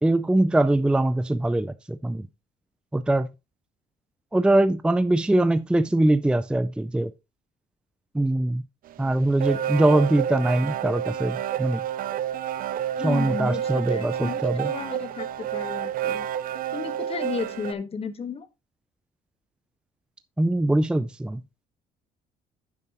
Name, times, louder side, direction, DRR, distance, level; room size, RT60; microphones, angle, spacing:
voice 1, 0.0-2.3 2.9-3.3 4.3-7.1 8.1-8.6 9.0-11.8 13.0-14.7 20.4-21.4, right 1 dB, 5° right, 0.5 m, -22 dB
sound 1, 8.9-17.7, right 10 dB, 55° right, 0.5 m, -29 dB
voice 2, 13.0-16.3 16.7-18.5, left 5 dB, 35° left, 1.4 m, -34 dB
9.5 x 7.3 x 3.0 m
cardioid pair, 110°, 17 cm